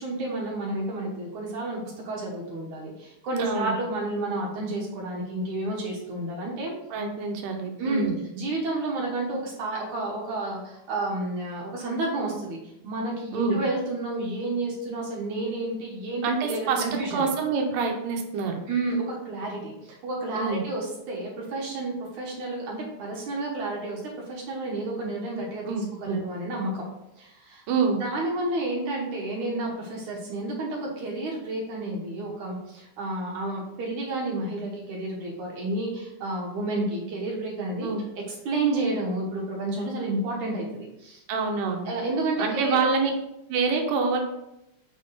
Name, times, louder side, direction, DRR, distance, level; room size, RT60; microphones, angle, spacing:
voice 1, 0.0-6.7 7.8-8.1 8.3-12.6 12.8-17.3 18.7-24.0 24.3-26.8 27.2-27.6 28.0-37.9 38.5-41.2 41.9-42.8, right 2 dB, 70° right, -4 dB, 2.6 m, -30 dB
voice 2, 3.4-3.7 6.9-8.2 13.3-13.6 16.2-16.8 17.1-18.6 20.3-20.6 25.7-26.2 27.7-28.0 37.8-38.0 41.3-41.9 42.4-43.1 43.5-44.2, right 4 dB, 90° right, 3 dB, 2.5 m, -26 dB
6.9 x 3.5 x 4.1 m, 0.86 s
omnidirectional pair, 3.7 m